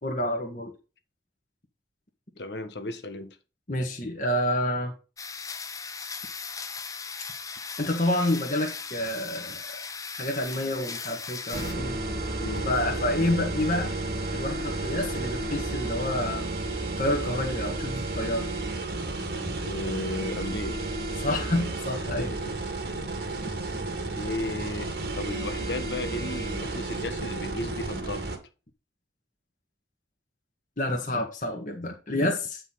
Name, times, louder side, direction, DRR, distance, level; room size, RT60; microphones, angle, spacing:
voice 1, 0.0-0.7 3.7-4.9 7.8-9.6 10.2-12.0 12.6-13.9 14.3-16.5 17.0-18.5 21.2-22.3 30.8-32.6, left 1 dB, 45° left, 1.8 m, -28 dB
voice 2, 2.4-3.4 12.4-12.7 19.4-20.9 21.3-21.4 22.2-23.1 23.7-23.9 24.2-28.3, left 2 dB, 80° left, 1.5 m, -35 dB
sound 1, 5.2-11.7, left 5 dB, 20° left, 0.7 m, -38 dB
sound 2, 11.5-28.4, right 2 dB, 65° right, 2.3 m, -32 dB
9.6 x 5.5 x 4.1 m
head